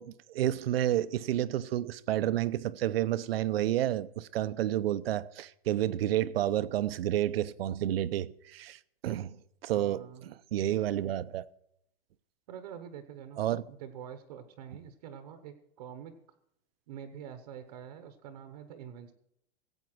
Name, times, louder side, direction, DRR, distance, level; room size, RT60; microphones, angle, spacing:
voice 1, 0.0-9.4 9.6-11.5 13.4-13.6, right 12 dB, 65° right, 0.7 m, -30 dB
voice 2, 9.7-10.3 12.5-16.2 16.9-19.1, right 8 dB, 40° right, 1.0 m, -46 dB
16.0 x 8.2 x 6.1 m
supercardioid pair, 180°, 32 cm